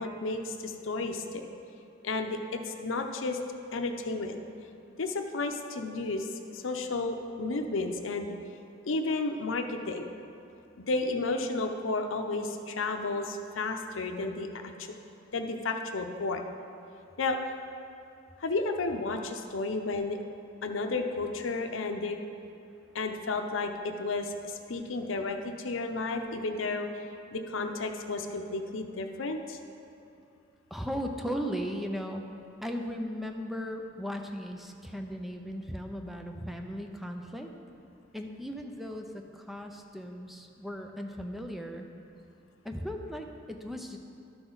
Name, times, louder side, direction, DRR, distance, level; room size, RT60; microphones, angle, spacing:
voice 1, 0.0-1.5 2.0-3.4 3.7-4.4 5.0-8.3 8.9-10.1 10.9-14.6 15.3-16.4 17.2-17.4 18.4-20.2 20.6-22.2 22.9-26.9 27.3-29.6, left 3 dB, 80° left, 5 dB, 0.6 m, -32 dB
voice 2, 30.7-32.3 32.6-37.5 38.1-41.9 42.6-44.0, equal, ahead, 3 dB, 0.5 m, -37 dB
12.0 x 6.0 x 3.9 m, 2.7 s
head